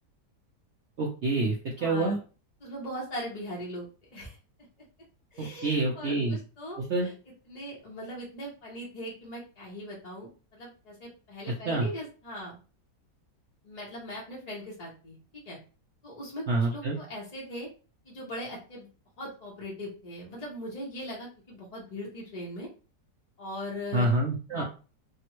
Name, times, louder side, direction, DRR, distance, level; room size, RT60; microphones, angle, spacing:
voice 1, 1.0-2.2 5.4-6.4 6.8-7.1 11.7-11.9 16.5-17.0 23.9-24.6, right 2 dB, 65° right, -2 dB, 0.7 m, -27 dB
voice 2, 1.8-2.2 2.6-4.4 5.3-7.1 7.5-12.6 13.6-15.2 15.4-15.6 16.0-17.7 18.0-18.9 19.2-22.7 23.4-24.1 24.5-24.6, equal, 40° left, -5 dB, 0.6 m, -40 dB
3.4 x 2.1 x 2.9 m, 0.35 s
omnidirectional pair, 1.9 m